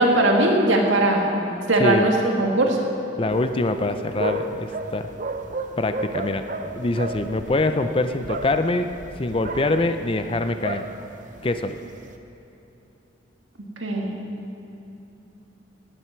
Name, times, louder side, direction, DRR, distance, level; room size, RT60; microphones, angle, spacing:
voice 1, 0.0-1.4 1.7-2.8 13.8-14.2, right 1 dB, 75° right, 1 dB, 1.9 m, -19 dB
voice 2, 1.8-2.1 3.2-5.1 5.8-8.9 9.2-10.8 11.4-11.8, left 2 dB, 25° left, 9 dB, 0.5 m, -24 dB
sound 1, 3.3-12.2, right 2 dB, 40° right, 0.7 m, -34 dB
18.0 x 7.7 x 5.8 m, 3.0 s
head